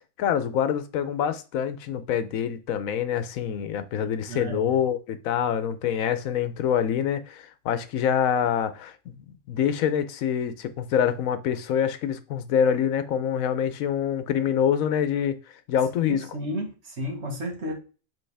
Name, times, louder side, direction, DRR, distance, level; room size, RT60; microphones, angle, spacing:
voice 1, 0.2-9.1 9.5-15.4 15.7-16.3, left 8 dB, 85° left, 1.1 m, -25 dB
voice 2, 4.3-4.7 16.0-17.7, equal, 55° right, 1.7 m, -32 dB
7.7 x 3.7 x 3.4 m
omnidirectional pair, 1.4 m